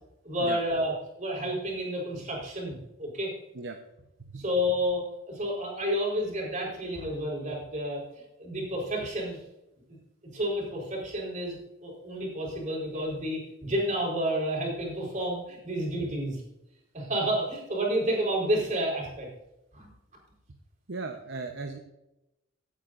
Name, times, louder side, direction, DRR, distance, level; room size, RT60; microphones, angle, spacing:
voice 1, 0.2-0.9 1.2-3.3 4.4-9.4 10.3-11.6 11.8-16.4 16.9-19.3 19.7-19.9, equal, 40° right, -2 dB, 4.2 m, -30 dB
voice 2, 20.9-21.8, right 3 dB, 60° right, 5 dB, 0.9 m, -37 dB
17.0 x 9.0 x 2.6 m, 0.90 s
head